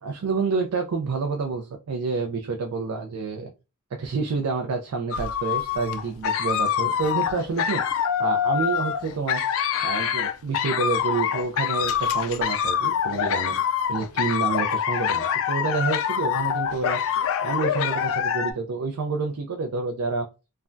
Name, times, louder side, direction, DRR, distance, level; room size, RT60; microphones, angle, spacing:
voice 1, 0.0-3.5 4.0-9.4 9.8-13.6 13.9-17.0 17.4-20.3, right 4 dB, 70° right, 3 dB, 0.4 m, -28 dB
sound 1, 5.1-18.5, left 8 dB, 60° left, 0.3 m, -25 dB
3.2 x 2.2 x 2.5 m, 0.28 s
head